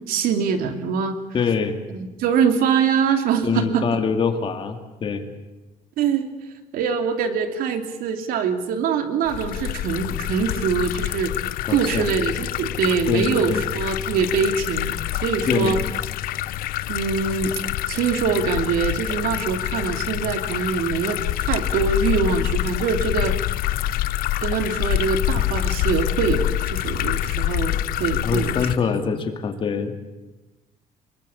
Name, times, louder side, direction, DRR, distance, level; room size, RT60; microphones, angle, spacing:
voice 1, 0.1-1.2 1.9-3.8 6.0-6.3 6.7-11.3 11.7-14.9 15.2-15.8 16.9-17.5 17.9-23.3 24.4-28.5 28.8-29.1, right 6 dB, 80° right, 7 dB, 2.9 m, -23 dB
voice 2, 1.3-1.8 3.4-5.2 11.7-12.1 13.1-13.6 15.5-15.8 28.2-29.9, left 6 dB, 35° left, 6 dB, 2.6 m, -24 dB
sound 1, 9.3-28.8, left 13 dB, 85° left, 0.8 m, -26 dB
25.0 x 22.0 x 8.7 m, 1.1 s
cardioid pair, 165°, 15 cm